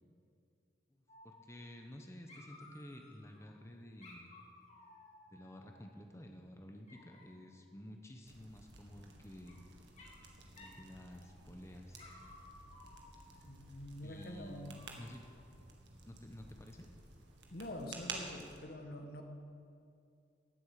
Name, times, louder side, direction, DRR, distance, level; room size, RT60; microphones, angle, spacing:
voice 1, 0.9-4.3 5.3-9.6 10.6-12.0 14.0-15.2 16.1-16.9, equal, 15° left, 3 dB, 0.9 m, -52 dB
Dog, 1.1-2.0 2.3-3.5 4.0-6.1 6.9-7.5 8.9-9.6 10.0-10.3 10.6-10.8 11.2-11.6 11.9-13.5 14.1-15.4, left 2 dB, 40° left, 2.6 m, -59 dB
sound 1, 8.2-18.6, right 4 dB, 85° right, 1.8 m, -52 dB
voice 2, 13.4-14.8 17.5-19.2, left 1 dB, 60° left, 5 dB, 1.4 m, -46 dB
17.0 x 8.1 x 6.6 m, 2.4 s
head